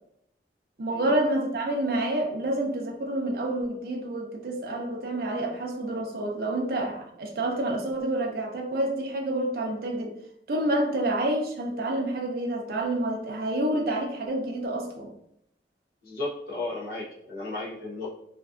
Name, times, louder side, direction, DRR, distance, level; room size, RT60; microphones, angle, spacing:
voice 1, 0.8-10.1 10.5-15.1, right 1 dB, 55° right, 1 dB, 0.5 m, -28 dB
voice 2, 16.0-18.1, left 2 dB, 60° left, -3 dB, 0.6 m, -34 dB
2.5 x 2.4 x 2.3 m, 0.73 s
head